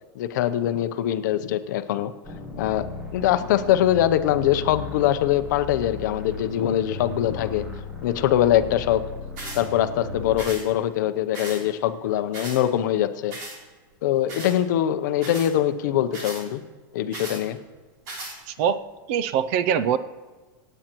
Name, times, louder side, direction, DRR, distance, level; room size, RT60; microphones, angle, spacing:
voice 1, 0.1-2.1 2.6-2.9 3.1-7.6 8.0-9.0 9.5-13.4 14.0-16.6 16.9-17.6, left 11 dB, 55° left, 11 dB, 0.7 m, -23 dB
sound 1, 2.2-10.5, left 4 dB, 10° right, 1.0 m, -36 dB
sound 2, 9.4-9.6 10.4-10.6 11.3-11.6 12.3-12.6 13.3-13.6 14.3-14.6 15.2-15.5 16.1-16.4 17.1-17.4 18.1-18.4, right 2 dB, 50° right, 3.2 m, -36 dB
voice 2, 18.5-18.8 19.1-20.0, right 8 dB, 35° right, 14 dB, 0.4 m, -23 dB
25.5 x 8.9 x 3.0 m, 1.3 s
supercardioid pair, 180°, 12 cm